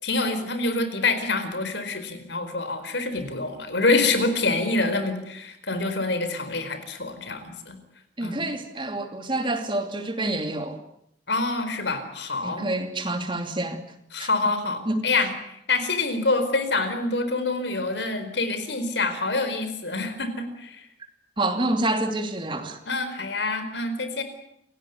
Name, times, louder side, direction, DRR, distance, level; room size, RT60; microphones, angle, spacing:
voice 1, 0.0-7.8 8.2-8.5 11.3-12.7 14.1-20.8 22.9-24.2, left 3 dB, 75° left, 4.5 m, -26 dB
voice 2, 8.2-10.8 12.4-13.8 14.2-14.3 14.9-15.1 21.4-22.8, right 2 dB, 25° right, 2.7 m, -27 dB
29.0 x 16.5 x 9.5 m
head